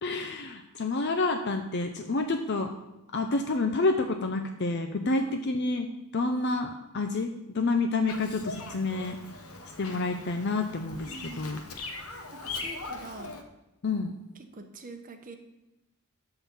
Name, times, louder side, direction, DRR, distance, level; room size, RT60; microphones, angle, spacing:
voice 1, 0.0-2.7 3.1-5.9 6.1-9.2 9.8-11.1 11.4-11.6 13.8-14.1, left 3 dB, 50° left, 5 dB, 0.6 m, -28 dB
voice 2, 5.1-5.6 11.0-11.4 12.3-13.4 14.3-15.4, right 4 dB, 35° right, 5 dB, 0.9 m, -44 dB
Bird vocalization bird call bird song, 8.1-13.4, left 3 dB, 75° left, 1.0 m, -40 dB
11.0 x 3.9 x 7.1 m, 0.94 s
head